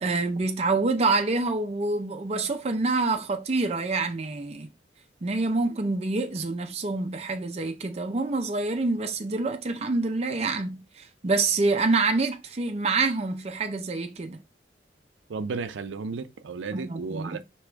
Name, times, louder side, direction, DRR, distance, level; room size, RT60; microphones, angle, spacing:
voice 1, 0.0-4.7 5.2-10.8 11.2-14.4 16.7-17.4, right 3 dB, 35° right, 0.5 m, -26 dB
voice 2, 15.3-17.4, right 4 dB, 90° right, 0.5 m, -33 dB
4.7 x 3.0 x 3.4 m
head